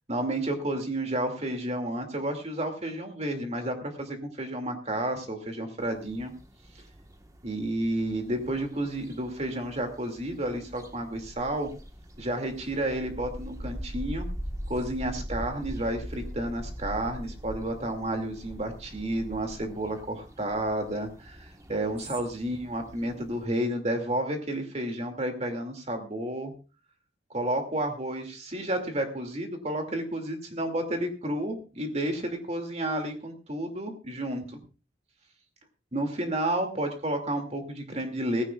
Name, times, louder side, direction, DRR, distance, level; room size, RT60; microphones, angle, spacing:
voice 1, 0.1-6.3 7.4-11.7 12.2-14.3 14.7-26.5 27.3-34.6 35.9-38.4, right 1 dB, 35° right, 5 dB, 2.5 m, -31 dB
sound 1, 5.8-23.5, equal, 20° right, 1.4 m, -42 dB
18.0 x 16.0 x 2.4 m, 0.33 s
head